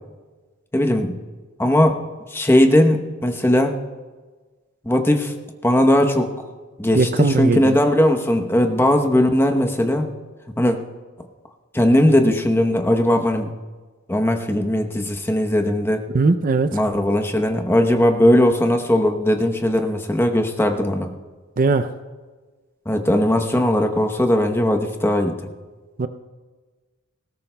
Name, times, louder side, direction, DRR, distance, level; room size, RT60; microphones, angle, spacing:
voice 1, 0.7-1.2 1.6-2.0 2.3-3.8 4.8-5.3 5.6-6.3 6.8-10.1 10.5-10.8 11.7-13.5 14.1-16.1 16.7-21.1 22.9-25.4, left 1 dB, 10° left, 4 dB, 0.8 m, -18 dB
voice 2, 6.9-7.8 16.1-16.8 21.6-21.9 26.0-26.1, right 3 dB, 40° right, 11 dB, 0.5 m, -19 dB
19.5 x 17.0 x 2.2 m, 1.3 s
head